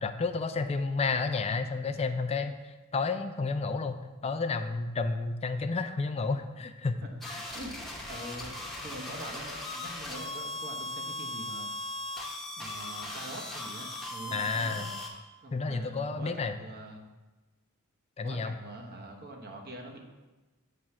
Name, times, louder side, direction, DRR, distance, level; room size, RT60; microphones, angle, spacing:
voice 1, 0.0-2.6 2.9-7.0 14.3-14.9 15.5-16.6 18.2-18.5, left 4 dB, 30° left, 8 dB, 0.4 m, -31 dB
sound 1, 7.2-15.1, left 1 dB, ahead, 0.8 m, -38 dB
voice 2, 7.5-8.5 8.8-11.7 12.6-14.9 15.4-17.1 18.2-20.0, right 1 dB, 45° right, 1 dB, 1.0 m, -44 dB
7.4 x 3.3 x 5.9 m, 1.2 s
head